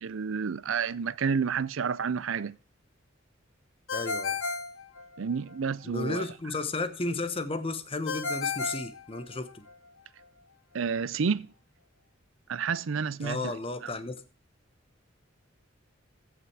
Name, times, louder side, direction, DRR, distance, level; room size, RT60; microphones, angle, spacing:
voice 1, 0.0-2.5 5.2-6.2 10.7-11.5 12.5-13.4 13.8-13.9, right 6 dB, 75° right, 0.5 m, -30 dB
Ringtone, 3.9-5.6 8.1-9.7, left 4 dB, 85° left, 1.6 m, -33 dB
voice 2, 3.9-4.4 5.8-9.7 13.2-14.2, left 2 dB, 30° left, 1.0 m, -33 dB
15.0 x 5.9 x 4.7 m
head